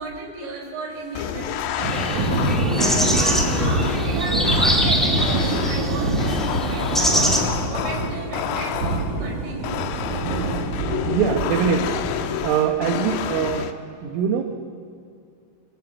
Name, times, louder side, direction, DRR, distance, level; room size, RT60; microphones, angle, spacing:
voice 1, 0.0-2.4 2.7-7.4 7.7-9.8, right 2 dB, 60° right, 1 dB, 6.8 m, -34 dB
sound 1, 1.1-9.2 9.6-13.7, left 10 dB, 80° left, 3.4 m, -29 dB
sound 2, 1.8-7.4, equal, ahead, 0.7 m, -24 dB
Thunder / Rain, 1.8-12.3, right 2 dB, 40° right, 4.1 m, -25 dB
voice 2, 11.1-13.7 14.0-14.4, right 7 dB, 75° right, 4 dB, 3.7 m, -23 dB
24.0 x 23.0 x 8.7 m, 2.3 s
omnidirectional pair, 5.9 m